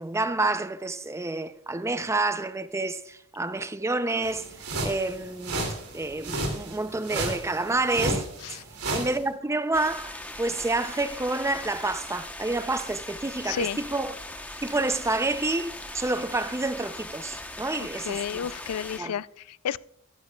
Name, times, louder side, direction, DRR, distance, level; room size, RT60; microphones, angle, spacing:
voice 1, 0.0-4.5 4.8-5.7 5.9-8.6 8.9-14.2 14.6-18.5 19.0-19.2, right 2 dB, 15° right, 0.5 m, -29 dB
sound 1, 4.2-9.2, right 2 dB, 85° right, 2.6 m, -32 dB
sound 2, 9.7-19.0, left 1 dB, 5° left, 0.9 m, -40 dB
voice 2, 13.4-13.8 17.8-19.8, left 8 dB, 75° left, 0.3 m, -32 dB
14.5 x 12.0 x 2.3 m
head